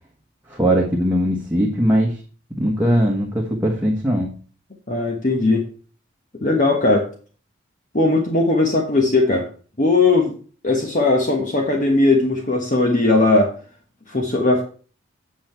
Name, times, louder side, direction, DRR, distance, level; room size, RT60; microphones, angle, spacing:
voice 1, 0.5-2.2 2.6-4.3, equal, 10° right, -2 dB, 1.3 m, -20 dB
voice 2, 4.9-5.7 6.4-7.1 7.9-9.5 9.8-10.3 10.6-13.6 14.1-14.6, left 2 dB, 35° left, 2 dB, 1.2 m, -18 dB
8.8 x 5.7 x 4.5 m, 0.39 s
head